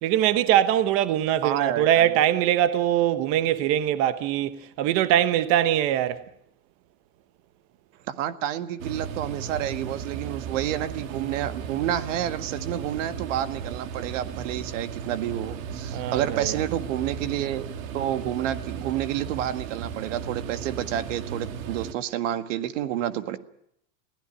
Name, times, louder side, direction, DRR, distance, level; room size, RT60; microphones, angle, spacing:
voice 1, 0.0-6.2 15.9-16.6, right 11 dB, 35° right, 1.1 m, -22 dB
voice 2, 1.4-2.2 8.1-17.7 17.9-23.4, right 11 dB, 65° right, 1.9 m, -29 dB
sound 1, 8.8-21.9, right 7 dB, 85° right, 2.3 m, -35 dB
22.0 x 16.0 x 10.0 m
supercardioid pair, 170°, 40 cm